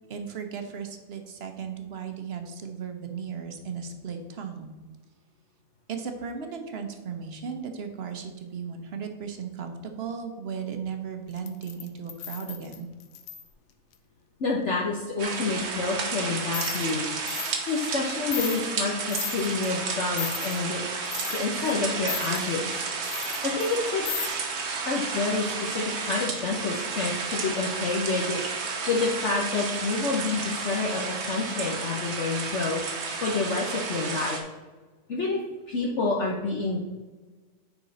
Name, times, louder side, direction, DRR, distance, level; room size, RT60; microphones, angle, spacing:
voice 1, 0.1-4.7 5.9-12.9, right 6 dB, 50° right, 5 dB, 1.0 m, -36 dB
sound 1, 11.4-13.5 16.5-16.9 17.3-17.5 17.9-18.0 18.3-18.6 19.1-19.7 20.2-20.6 21.1-21.7 22.1-22.4 23.0-23.8 24.0-24.3, left 10 dB, 75° left, 1.1 m, -35 dB
voice 2, 14.4-17.4 17.7-20.9 21.3-22.9 23.4-24.2 24.8-28.4 28.9-32.8 33.2-34.4 35.1-35.4 35.7-36.8, left 3 dB, 55° left, -2 dB, 1.1 m, -28 dB
sound 2, 15.2-34.4, right 4 dB, 75° right, 1.5 m, -32 dB
9.6 x 4.2 x 4.1 m, 1.3 s
omnidirectional pair, 1.6 m